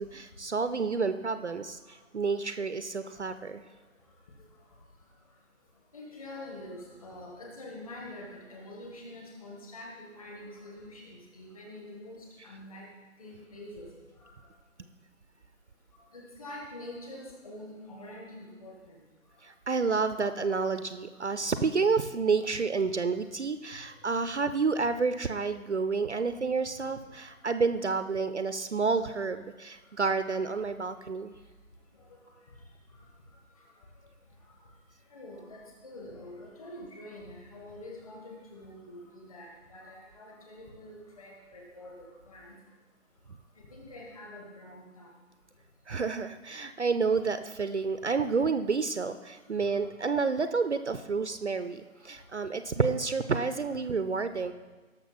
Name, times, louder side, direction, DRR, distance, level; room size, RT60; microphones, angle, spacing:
voice 1, 0.0-3.6 19.4-31.3 45.9-54.5, right 4 dB, 55° right, 11 dB, 0.6 m, -29 dB
voice 2, 5.9-12.2 12.4-12.9 13.2-13.9 16.1-19.0 32.1-32.2 35.1-42.5 43.7-45.1, left 1 dB, 25° left, -1 dB, 1.8 m, -45 dB
17.5 x 6.6 x 4.2 m, 1.3 s
figure-of-eight pair, 165°, 42 cm